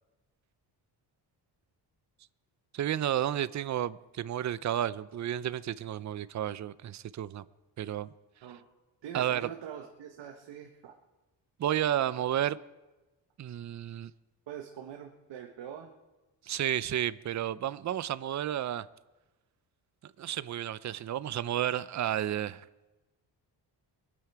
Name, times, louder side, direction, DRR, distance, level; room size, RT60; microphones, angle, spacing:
voice 1, 2.7-7.4 7.8-8.1 9.1-9.5 11.6-12.6 13.4-14.1 16.5-18.9 20.2-22.7, right 11 dB, 40° right, 0.6 m, -32 dB
voice 2, 9.0-10.9 14.5-15.9, right 9 dB, 90° right, 1.3 m, -44 dB
24.0 x 8.7 x 4.7 m
cardioid pair, 90°, 42 cm